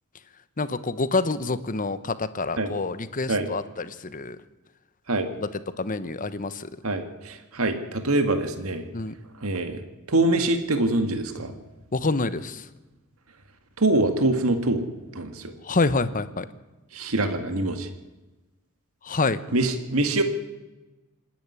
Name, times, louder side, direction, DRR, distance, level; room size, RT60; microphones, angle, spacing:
voice 1, 0.6-4.4 5.4-5.5 5.8-6.7 8.9-9.1 11.9-12.6 15.6-16.5 19.0-19.4, left 3 dB, 40° left, 13 dB, 1.0 m, -27 dB
voice 2, 6.8-8.8 9.4-9.8 10.1-11.5 13.8-14.8 15.1-15.5 16.9-17.9 19.5-20.2, right 2 dB, 75° right, 7 dB, 1.9 m, -24 dB
26.0 x 10.5 x 9.9 m, 1.1 s
head